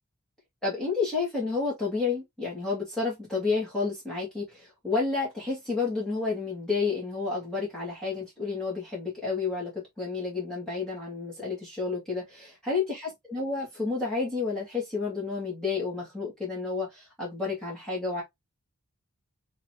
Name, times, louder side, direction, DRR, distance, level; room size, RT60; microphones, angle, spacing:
voice 1, 0.6-18.2, left 4 dB, 5° left, 2.2 m, -30 dB
4.1 x 4.0 x 2.9 m
head